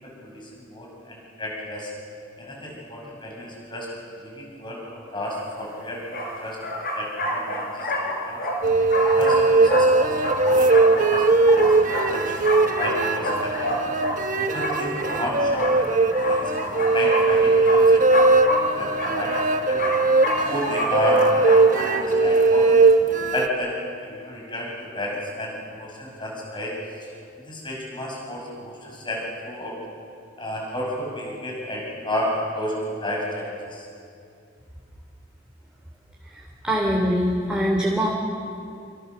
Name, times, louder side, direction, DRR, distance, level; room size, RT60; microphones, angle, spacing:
voice 1, 0.0-1.9 2.4-3.9 4.2-6.6 7.0-8.4 9.0-13.7 14.4-15.9 16.2-19.8 20.4-22.7 23.1-23.8 24.0-26.8 27.4-29.8 30.4-33.9, left 1 dB, 25° left, -2 dB, 6.4 m, -32 dB
sound 1, 5.3-5.4 6.1-22.0, equal, 50° left, 4.3 m, -28 dB
sound 2, 8.6-23.5, right 3 dB, 45° right, 1.3 m, -19 dB
voice 2, 36.6-38.1, equal, 5° right, -2 dB, 3.3 m, -22 dB
29.0 x 28.0 x 6.9 m, 2.4 s
head